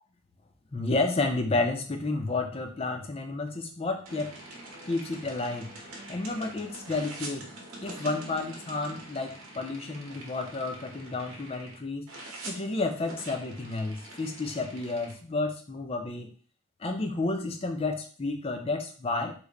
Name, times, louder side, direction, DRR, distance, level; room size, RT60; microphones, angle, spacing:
voice 1, 0.7-4.3 4.9-5.7 6.1-7.5 7.8-12.1 12.4-16.3 16.8-19.3, left 3 dB, 25° left, 4 dB, 0.4 m, -31 dB
To the movies, 4.0-11.8 12.1-15.1, right 2 dB, 80° right, 0.8 m, -45 dB
3.2 x 2.1 x 3.7 m, 0.42 s
head